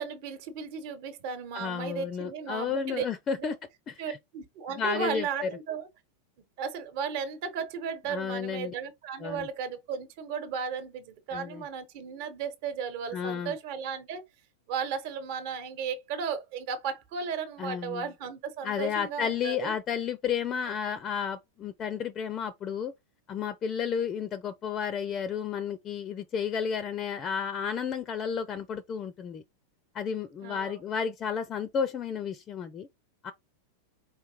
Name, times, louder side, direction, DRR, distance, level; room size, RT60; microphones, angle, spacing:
voice 1, 0.0-3.1 3.4-3.5 4.0-5.9 6.6-14.2 14.7-19.7 30.4-30.8, right 6 dB, 50° right, 1.1 m, -35 dB
voice 2, 1.5-3.6 3.9-4.2 4.7-5.5 8.1-8.7 9.2-9.5 11.3-11.6 13.1-13.6 17.6-18.1 18.6-22.9 23.3-29.4 29.9-32.9 33.2-33.3, left 7 dB, 25° left, 0.5 m, -32 dB
4.7 x 3.2 x 2.9 m
figure-of-eight pair, 90°, 0 cm